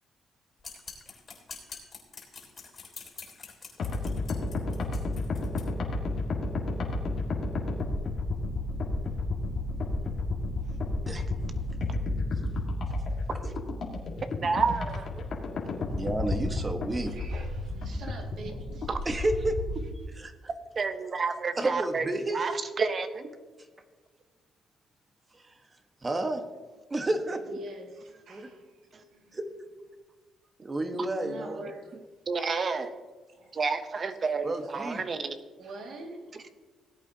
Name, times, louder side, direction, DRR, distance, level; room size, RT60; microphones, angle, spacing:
sound 1, 0.6-5.7, left 5 dB, 40° left, 3.1 m, -45 dB
sound 2, 3.8-19.8, left 2 dB, 60° left, 1.9 m, -32 dB
voice 1, 14.4-14.9 18.9-19.0 20.8-22.1 22.3-23.3 32.3-32.9 33.5-35.4, right 4 dB, 45° right, 0.9 m, -29 dB
voice 2, 15.9-17.1 19.0-19.6 20.2-20.3 21.6-22.4 26.0-26.4 26.9-27.4 28.3-28.5 29.3-29.5 30.6-31.6 34.4-35.0, right 2 dB, 25° right, 1.3 m, -30 dB
voice 3, 17.0-19.3 27.5-29.4 31.2-32.0 33.3-33.5 34.9-35.1 35.6-36.5, right 2 dB, 65° right, 2.2 m, -45 dB
18.5 x 8.4 x 2.9 m
cardioid pair, 90°, 0 cm